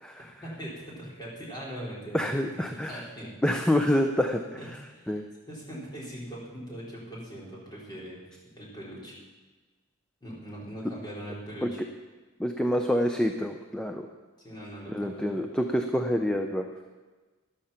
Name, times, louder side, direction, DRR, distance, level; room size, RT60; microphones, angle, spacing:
voice 1, 0.4-3.3 4.6-9.2 10.2-11.8 14.4-15.4, equal, 20° left, -6 dB, 4.6 m, -41 dB
voice 2, 2.1-3.0 3.4-4.4 5.1-5.2 11.6-11.7 12.4-14.1 14.9-16.7, equal, 5° left, 4 dB, 0.6 m, -27 dB
14.0 x 11.5 x 5.8 m, 1.3 s
head